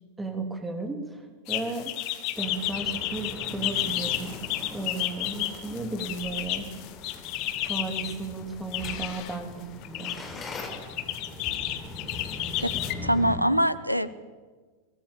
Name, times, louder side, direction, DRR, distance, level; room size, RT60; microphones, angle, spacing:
voice 1, 0.2-1.9 2.4-4.3 4.7-6.7 7.7-10.1, right 3 dB, 10° right, 5 dB, 3.3 m, -34 dB
sound 1, 1.5-8.1 8.7-9.4 9.8-10.2 10.7-12.9, left 14 dB, 40° left, 1.5 m, -32 dB
sound 2, 2.4-13.4, left 2 dB, 20° left, 4.6 m, -41 dB
voice 2, 13.0-14.1, equal, 90° right, 16 dB, 0.9 m, -23 dB
22.5 x 18.5 x 7.4 m, 1.4 s
figure-of-eight pair, 90°, 0 cm